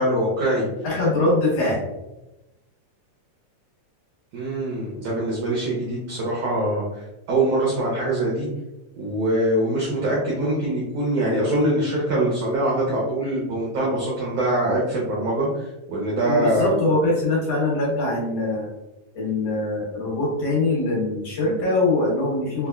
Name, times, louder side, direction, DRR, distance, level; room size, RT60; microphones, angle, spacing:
voice 1, 0.0-0.7 4.3-8.5 9.0-16.7, right 1 dB, 80° right, -4 dB, 1.4 m, -23 dB
voice 2, 0.8-1.9 16.3-18.7 19.1-22.7, left 2 dB, 60° left, -6 dB, 1.9 m, -23 dB
5.1 x 2.1 x 2.2 m, 0.98 s
omnidirectional pair, 3.7 m